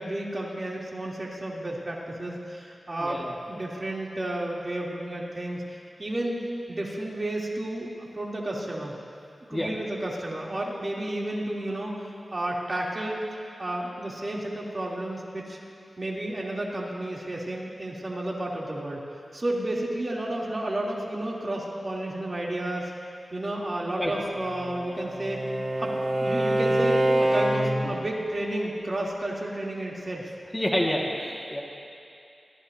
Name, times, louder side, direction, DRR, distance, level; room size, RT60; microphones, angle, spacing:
voice 1, 0.0-9.0 9.5-11.9 12.3-13.2 13.6-15.6 16.0-19.0 19.3-22.9 23.3-25.4 25.8-30.3, right 1 dB, 40° right, -4 dB, 2.9 m, -32 dB
voice 2, 3.0-3.3 9.5-9.7 24.0-24.1 30.5-31.6, equal, 20° left, -2 dB, 1.7 m, -28 dB
Bowed string instrument, 24.4-28.0, right 1 dB, 70° right, 2.6 m, -25 dB
26.5 x 15.0 x 2.7 m, 2.5 s
cardioid pair, 55°, 0 cm